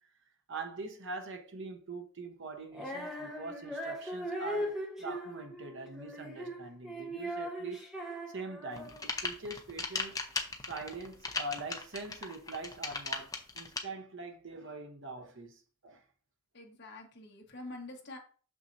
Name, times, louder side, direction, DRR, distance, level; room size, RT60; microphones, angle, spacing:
voice 1, 0.5-7.8 8.3-10.2 10.7-16.0, right 3 dB, 55° right, 1.0 m, -43 dB
Female singing, 2.7-9.1, right 1 dB, ahead, 1.2 m, -39 dB
sound 1, 8.7-13.8, left 3 dB, 15° left, 0.7 m, -36 dB
voice 2, 16.5-18.2, left 2 dB, 50° left, 1.4 m, -46 dB
6.5 x 6.1 x 2.7 m
head